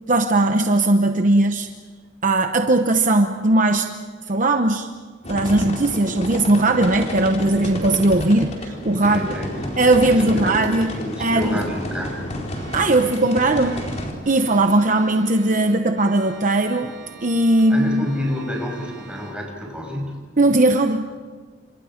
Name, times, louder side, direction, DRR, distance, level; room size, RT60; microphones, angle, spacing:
voice 1, 0.1-1.7 2.2-3.9 4.3-4.9 5.3-9.2 9.8-11.6 12.7-13.8 14.3-16.9 17.2-18.1 20.4-21.1, right 2 dB, 45° right, 6 dB, 0.9 m, -18 dB
sound 1, 5.2-14.1, left 1 dB, 40° left, 4.4 m, -30 dB
voice 2, 9.0-10.6 10.9-12.3 17.7-20.2, left 1 dB, 5° right, -1 dB, 6.4 m, -29 dB
Organ, 12.5-19.4, right 4 dB, 65° right, 3.0 m, -43 dB
29.5 x 27.0 x 5.2 m, 1.5 s
head